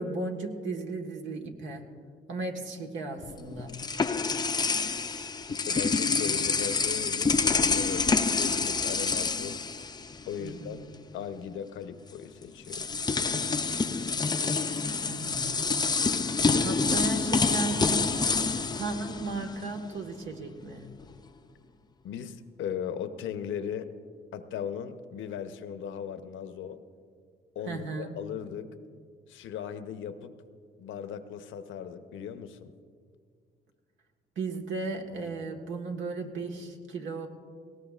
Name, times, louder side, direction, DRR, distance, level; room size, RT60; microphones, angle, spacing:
voice 1, 0.0-1.8 2.3-3.8 10.4-10.8 15.0-15.7 16.0-18.1 18.7-20.9 27.6-28.1 34.3-37.3, right 3 dB, 75° right, 3 dB, 1.5 m, -35 dB
sound 1, 3.2-10.5 10.8-11.0 12.1-12.2 12.6-19.8, left 4 dB, 20° left, 0.5 m, -27 dB
voice 2, 5.5-9.6 10.3-10.8 11.1-13.0 22.0-23.9 24.3-26.8 27.5-28.7 29.3-30.3 30.8-32.7, left 8 dB, 75° left, 10 dB, 0.8 m, -38 dB
19.0 x 17.5 x 2.4 m, 2.1 s
cardioid pair, 90°, 20 cm